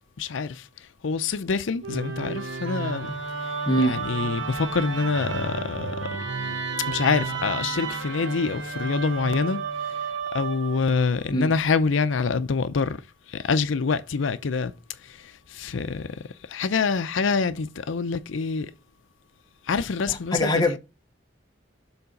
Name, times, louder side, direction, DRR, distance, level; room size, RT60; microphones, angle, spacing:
voice 1, 0.2-0.7 1.0-3.1 3.8-6.1 6.9-10.0 10.3-13.0 13.3-14.7 15.0-18.7 19.7-20.5, left 5 dB, 85° left, 0.5 m, -26 dB
Musical instrument, 1.8-11.0, right 4 dB, 80° right, 1.2 m, -31 dB
voice 2, 20.1-20.8, equal, 20° left, 0.9 m, -23 dB
7.1 x 3.9 x 5.2 m
head